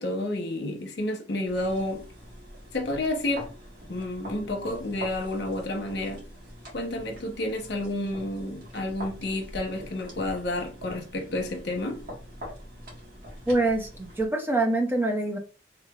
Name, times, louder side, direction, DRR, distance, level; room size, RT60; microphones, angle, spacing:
voice 1, 0.0-2.0 2.7-3.5 3.9-6.2 6.7-12.0, left 1 dB, 70° left, 1.0 m, -30 dB
sound 1, 1.5-14.3, equal, 55° right, 1.5 m, -44 dB
voice 2, 13.5-15.4, right 2 dB, 10° right, 0.5 m, -25 dB
3.5 x 3.2 x 2.4 m
head